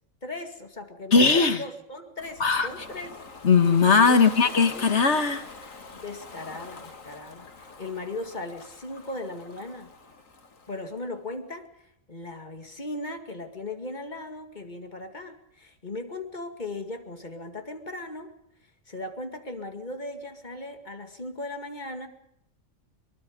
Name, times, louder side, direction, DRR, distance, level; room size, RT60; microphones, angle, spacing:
voice 1, 0.2-3.2 4.1-5.0 5.9-9.9 10.7-18.3 18.9-22.1, left 2 dB, 35° left, 6 dB, 2.3 m, -38 dB
voice 2, 1.1-1.6 2.4-2.7 3.4-5.4, left 5 dB, 60° left, 10 dB, 1.7 m, -19 dB
Ocean, 2.2-11.0, left 3 dB, 85° left, 2.4 m, -44 dB
24.0 x 22.0 x 5.1 m, 0.77 s
omnidirectional pair, 1.3 m